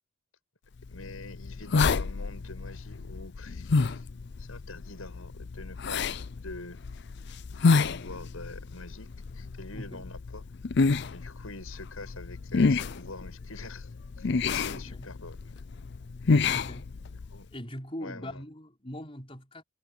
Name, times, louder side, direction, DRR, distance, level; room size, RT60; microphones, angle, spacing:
sound 1, 0.8-17.4, left 4 dB, 55° left, 0.5 m, -29 dB
voice 1, 0.9-4.1 4.4-6.8 7.5-10.4 11.1-13.9 14.2-15.4 17.3-17.5 18.0-18.4, left 2 dB, 85° left, 7.5 m, -45 dB
voice 2, 9.7-10.1 14.6-15.1 16.5-17.0 17.5-19.6, equal, 25° left, 5.3 m, -41 dB
head